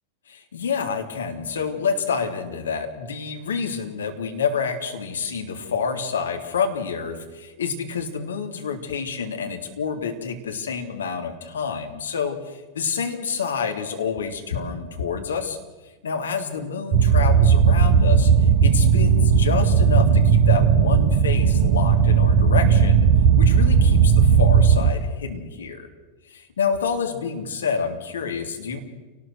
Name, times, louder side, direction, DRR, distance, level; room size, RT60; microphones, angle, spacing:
voice 1, 0.3-15.6 16.0-18.3 18.6-23.1 23.4-25.9 26.3-28.8, left 6 dB, 65° left, 4 dB, 3.1 m, -28 dB
sound 1, 16.9-24.9, right 6 dB, 55° right, 1.4 m, -16 dB
29.0 x 19.0 x 6.5 m, 1.2 s
figure-of-eight pair, 90°, 0 cm